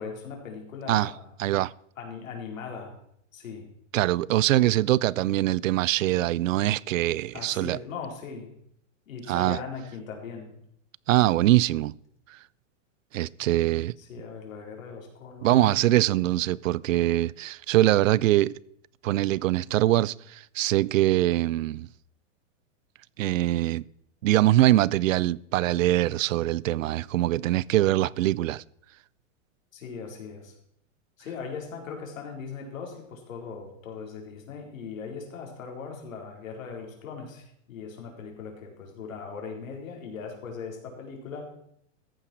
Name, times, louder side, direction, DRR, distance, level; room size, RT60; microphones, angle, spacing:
voice 1, 0.0-1.3 2.0-2.9 3.3-3.7 7.3-8.5 9.1-10.6 14.0-16.2 29.7-30.5 31.2-41.5, left 5 dB, 90° left, 4.3 m, -39 dB
voice 2, 1.4-1.7 3.9-7.8 9.3-9.6 11.1-11.9 13.1-13.9 15.4-18.5 19.0-21.9 23.2-23.8 24.2-28.6, right 15 dB, 80° right, 0.6 m, -23 dB
14.5 x 10.0 x 4.6 m
supercardioid pair, 165°, 39 cm